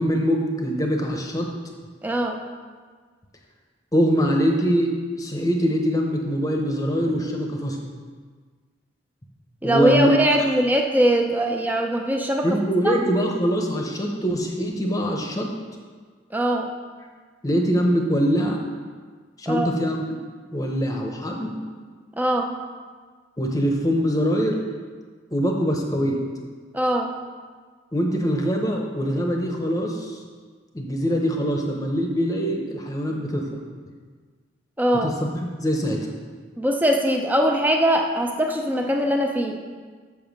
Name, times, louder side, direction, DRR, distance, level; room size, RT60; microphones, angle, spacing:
voice 1, 0.0-1.5 3.9-7.9 9.6-10.2 12.4-15.5 17.4-18.6 19.4-20.2 20.5-21.6 23.4-24.6 25.3-26.2 27.9-30.2 30.7-33.6 35.0-36.1, equal, 20° left, 1 dB, 0.9 m, -23 dB
voice 2, 2.0-2.4 9.6-12.6 12.8-13.0 16.3-16.7 19.5-19.7 22.2-22.5 26.7-27.1 34.8-35.1 36.6-39.6, equal, 10° right, 3 dB, 0.5 m, -21 dB
7.0 x 6.7 x 5.3 m, 1.6 s
head